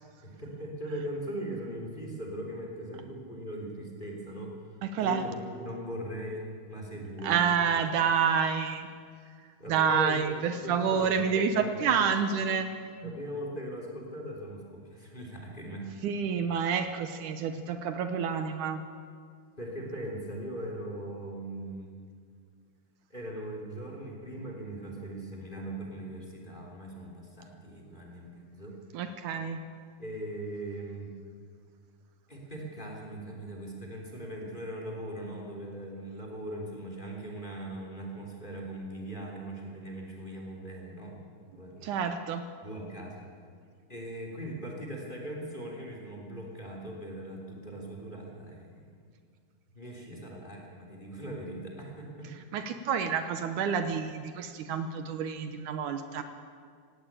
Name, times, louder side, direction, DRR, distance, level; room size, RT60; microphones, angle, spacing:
voice 1, 0.2-7.4 9.6-11.9 13.0-15.9 19.6-22.0 23.1-28.8 30.0-31.1 32.3-41.3 41.6-42.0 42.6-43.3 43.9-49.1 49.7-52.3, right 1 dB, 15° left, 0 dB, 3.0 m, -40 dB
voice 2, 7.2-8.9 9.7-12.7 13.0-13.1 16.0-18.8 28.9-29.6 41.8-42.4 52.5-56.2, right 6 dB, 75° right, 8 dB, 2.3 m, -28 dB
17.5 x 17.0 x 8.8 m, 2.1 s
omnidirectional pair, 3.8 m